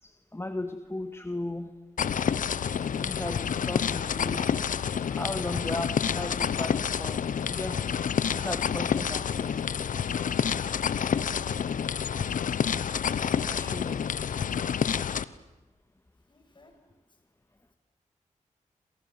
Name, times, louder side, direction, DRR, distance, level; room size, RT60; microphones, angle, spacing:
voice 1, 0.0-1.7 2.9-4.7 5.1-7.8 8.4-10.0 13.5-14.5, left 1 dB, 20° left, 7 dB, 2.2 m, -37 dB
sound 1, 2.0-15.2, left 7 dB, 75° left, 0.9 m, -28 dB
voice 2, 16.3-16.9 17.7-17.8, left 1 dB, 35° left, 5 dB, 7.1 m, -58 dB
27.5 x 27.5 x 7.6 m, 1.1 s
cardioid pair, 55°, 14 cm